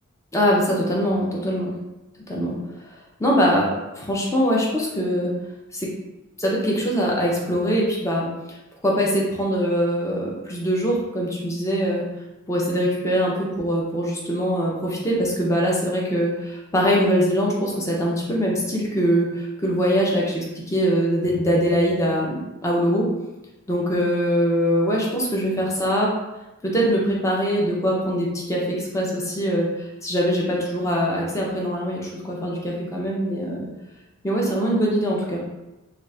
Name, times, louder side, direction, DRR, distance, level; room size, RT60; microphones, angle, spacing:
voice 1, 0.3-1.7 2.3-2.5 3.2-3.7 4.0-5.3 5.7-5.9 6.4-8.3 8.8-12.0 12.5-23.1 23.7-26.1 26.6-33.6 34.2-35.4, equal, 15° left, -3 dB, 0.5 m, -22 dB
2.4 x 2.4 x 3.3 m, 1.0 s
head